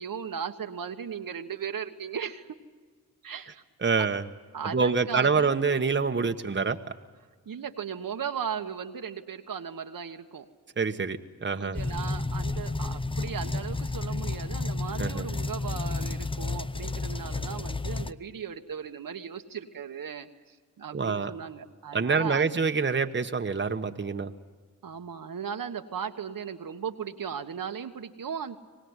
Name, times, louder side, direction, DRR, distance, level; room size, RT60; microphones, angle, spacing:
voice 1, 0.0-2.5 3.2-3.6 4.5-5.5 7.5-10.5 11.6-20.3 20.8-22.5 24.8-28.6, right 7 dB, 60° right, 6 dB, 1.4 m, -37 dB
voice 2, 3.8-4.3 4.7-6.8 10.8-11.8 15.0-15.3 20.9-21.3 21.9-24.3, right 5 dB, 30° right, 6 dB, 1.3 m, -26 dB
sound 1, 11.7-18.1, left 3 dB, 15° left, 0.7 m, -31 dB
24.5 x 19.0 x 9.7 m, 1.5 s
cardioid pair, 50°, 37 cm